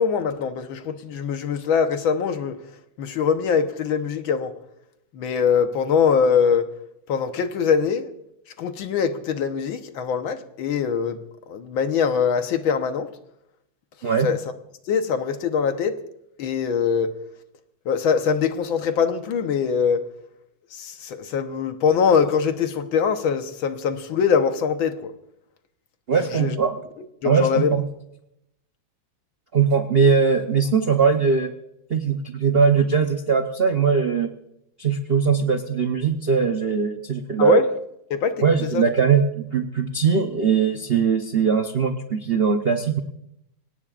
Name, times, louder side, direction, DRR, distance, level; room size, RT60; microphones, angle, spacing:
voice 1, 0.0-2.6 3.0-4.5 5.1-6.7 7.1-8.1 8.6-11.2 11.5-13.1 14.2-14.4 14.9-16.0 16.4-17.1 17.9-20.0 20.7-25.1 26.3-26.6 27.2-27.8 37.4-37.6 38.1-38.8, left 6 dB, 75° left, 1.8 m, -22 dB
voice 2, 26.1-26.8 27.2-27.8 29.5-31.5 31.9-34.3 34.8-37.6 38.4-43.0, right 6 dB, 60° right, 0.6 m, -20 dB
25.5 x 18.0 x 2.5 m
omnidirectional pair, 2.2 m